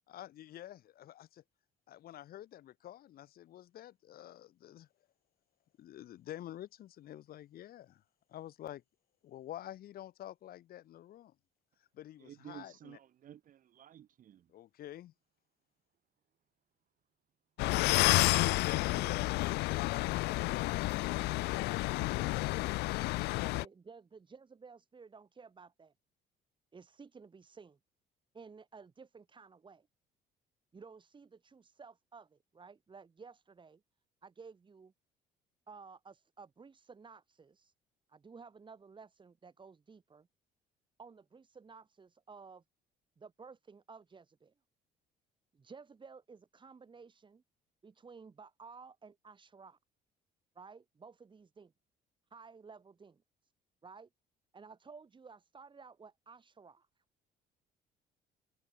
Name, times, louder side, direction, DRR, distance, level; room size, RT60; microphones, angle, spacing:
voice 1, 0.1-1.4 1.9-4.9 5.8-8.0 8.3-8.8 9.2-11.3 11.9-13.0 14.5-15.1 17.8-23.4, left 12 dB, 65° left, 2.1 m, -49 dB
voice 2, 12.2-14.5, right 10 dB, 55° right, 1.6 m, -53 dB
sound 1, 17.6-23.6, left 21 dB, 85° left, 0.5 m, -30 dB
voice 3, 23.5-25.9 26.7-27.8 28.3-29.9 30.7-33.8 34.2-34.9 35.7-37.7 38.1-40.3 41.0-42.6 43.2-44.5 45.5-47.4 47.8-49.8 50.5-51.7 52.3-53.5 53.8-54.1 54.5-56.9, right 5 dB, 30° right, 6.3 m, -54 dB
cardioid pair, 110°, 17 cm